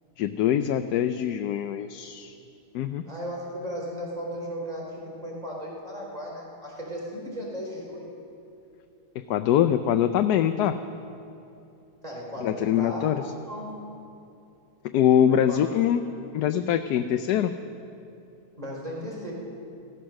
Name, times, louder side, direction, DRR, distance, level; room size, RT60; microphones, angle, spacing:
voice 1, 0.2-2.3 2.7-3.0 9.3-10.7 12.4-13.2 14.9-16.0 16.3-17.5, left 10 dB, 80° left, 8 dB, 1.1 m, -23 dB
voice 2, 3.1-8.1 12.0-13.7 15.3-15.6 18.6-19.3, equal, 25° right, -2 dB, 3.7 m, -36 dB
15.5 x 13.5 x 6.4 m, 2.7 s
omnidirectional pair, 1.7 m